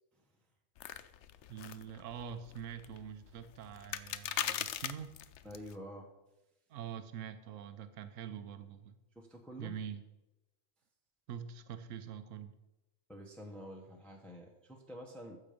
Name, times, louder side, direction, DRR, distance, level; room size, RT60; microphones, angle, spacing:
sound 1, 0.8-5.8, left 10 dB, 70° left, 0.9 m, -41 dB
voice 1, 1.5-5.2 6.7-9.0 9.6-10.0 11.3-12.5, right 8 dB, 80° right, 10 dB, 1.1 m, -45 dB
voice 2, 5.4-6.1 9.1-9.8 13.1-15.4, equal, ahead, 0 dB, 1.1 m, -48 dB
14.5 x 6.7 x 5.2 m, 0.99 s
omnidirectional pair, 1.3 m